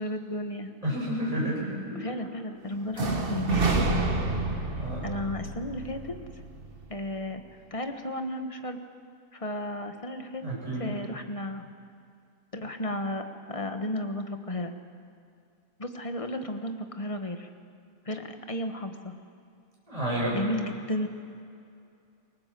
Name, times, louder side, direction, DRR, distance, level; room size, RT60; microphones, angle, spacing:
voice 1, 0.0-0.7 1.9-4.1 4.5-6.1 6.9-7.4 7.7-8.8 9.3-10.4 10.7-11.6 12.5-14.7 15.8-17.5 18.0-19.1 20.3-21.1, left 1 dB, 20° left, 6 dB, 1.4 m, -33 dB
voice 2, 0.8-2.0 4.7-5.0 10.4-10.9 19.9-20.4, right 1 dB, 20° right, -5 dB, 8.3 m, -30 dB
sound 1, 2.9-6.9, right 3 dB, 35° right, 1.7 m, -29 dB
28.5 x 19.0 x 7.7 m, 2.4 s
omnidirectional pair, 1.7 m